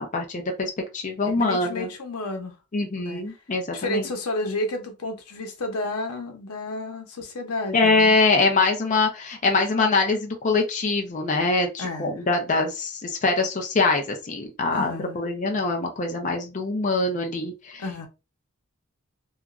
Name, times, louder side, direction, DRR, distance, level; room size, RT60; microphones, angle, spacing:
voice 1, 0.0-1.9 2.7-4.1 7.7-17.8, left 3 dB, 35° left, 0.5 m, -24 dB
voice 2, 1.4-2.6 3.0-3.2 3.7-8.1 11.8-12.2 14.7-15.2 17.8-18.1, left 2 dB, 90° left, 0.8 m, -31 dB
2.9 x 2.3 x 2.4 m
head